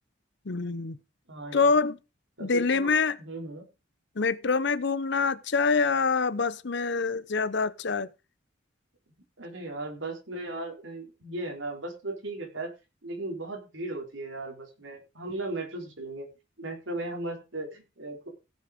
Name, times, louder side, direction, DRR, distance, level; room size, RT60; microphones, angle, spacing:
voice 1, 0.5-1.0 1.5-2.0 2.4-3.2 4.2-8.1, left 4 dB, 60° left, 0.7 m, -25 dB
voice 2, 1.3-1.7 2.4-3.7 9.4-12.7 13.0-16.3 16.6-18.3, right 2 dB, 75° right, 4.0 m, -37 dB
16.5 x 6.5 x 5.1 m
head